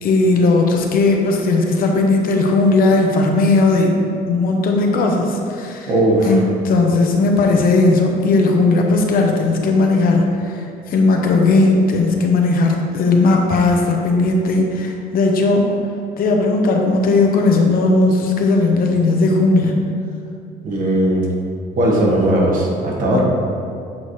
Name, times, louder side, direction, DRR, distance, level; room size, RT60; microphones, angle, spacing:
voice 1, 0.0-5.9 6.3-15.7 16.2-19.8 23.1-23.2, left 3 dB, 60° left, 1 dB, 0.8 m, -16 dB
voice 2, 5.9-6.4 20.6-21.3 21.7-23.2, right 1 dB, 55° right, -2 dB, 1.3 m, -17 dB
7.5 x 4.1 x 3.1 m, 2.6 s
cardioid pair, 110°, 17 cm